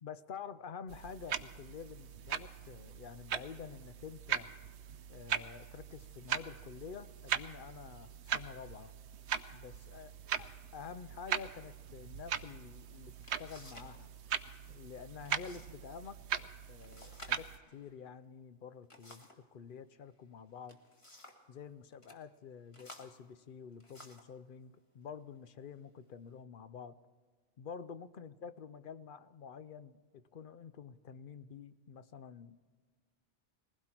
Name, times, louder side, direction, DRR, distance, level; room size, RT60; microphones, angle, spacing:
voice 1, 0.0-4.5 5.1-8.9 9.5-10.1 10.4-10.5 10.7-14.1 14.7-20.8 21.5-27.0 27.6-32.6, left 6 dB, 55° left, 14 dB, 0.7 m, -49 dB
sound 1, 0.9-17.6, right 8 dB, 75° right, 1.0 m, -40 dB
sound 2, 13.2-14.0 14.2-14.7 15.2-15.8 16.1-16.2 16.8-19.5 20.4-21.5 21.9-22.2 22.7-24.4 25.1-25.3 25.9-26.4, left 1 dB, 25° left, 1.7 m, -56 dB
20.5 x 16.0 x 4.4 m, 1.5 s
omnidirectional pair, 1.2 m